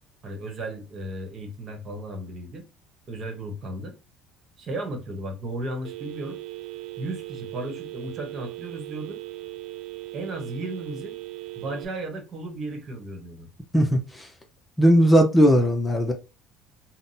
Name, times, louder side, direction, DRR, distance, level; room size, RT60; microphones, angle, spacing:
voice 1, 0.2-2.6 3.1-3.9 4.6-6.4 7.0-9.2 10.1-11.2 11.6-13.5, right 1 dB, 50° right, 1.1 m, -35 dB
Telephone, 5.8-11.9, right 19 dB, 70° right, 0.3 m, -38 dB
voice 2, 13.7-14.3 14.8-16.1, equal, 15° left, 0.7 m, -18 dB
3.8 x 2.2 x 2.6 m
supercardioid pair, 80°, 0 cm